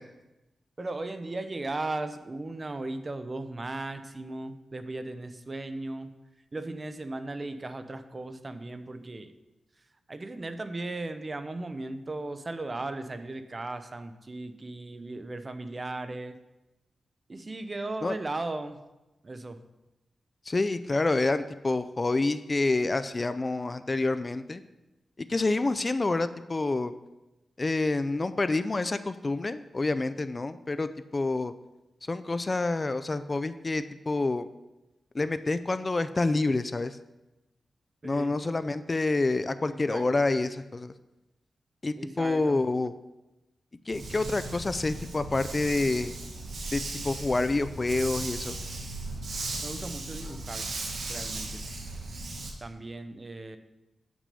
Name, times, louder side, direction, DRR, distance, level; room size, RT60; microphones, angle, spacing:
voice 1, 0.8-6.1 6.5-9.3 10.1-16.4 17.3-18.8 19.2-19.6 38.0-38.3 39.7-40.1 42.0-42.6 49.6-50.7 51.0-51.6 52.6-53.6, right 2 dB, 30° right, 10 dB, 0.7 m, -37 dB
voice 2, 20.5-24.6 25.2-26.9 27.6-31.5 32.1-34.5 35.1-37.0 38.0-40.9 41.8-42.9 43.9-46.1 46.7-48.6, left 2 dB, 30° left, 12 dB, 0.4 m, -28 dB
Dog, 43.9-52.5, right 2 dB, 70° right, 1.5 m, -37 dB
8.3 x 6.1 x 5.4 m, 1.0 s
cardioid pair, 85°, 0 cm